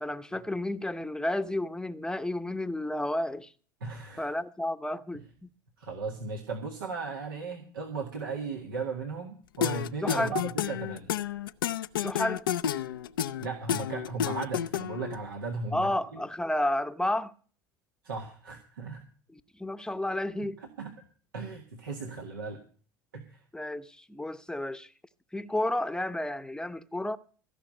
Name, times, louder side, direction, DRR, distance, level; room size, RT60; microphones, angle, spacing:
voice 1, 0.0-3.5 4.2-5.2 10.0-10.3 11.9-12.5 15.7-17.3 19.3-20.6 23.5-24.9 25.3-27.2, left 1 dB, 5° left, 0.8 m, -31 dB
voice 2, 3.8-4.3 5.8-11.1 13.4-16.2 18.0-19.0 20.6-20.9 21.3-22.6 23.1-23.4, right 4 dB, 90° right, 1.9 m, -36 dB
sound 1, 9.6-15.1, left 9 dB, 90° left, 0.5 m, -30 dB
16.0 x 5.8 x 9.0 m
hypercardioid pair, 85°, 11 cm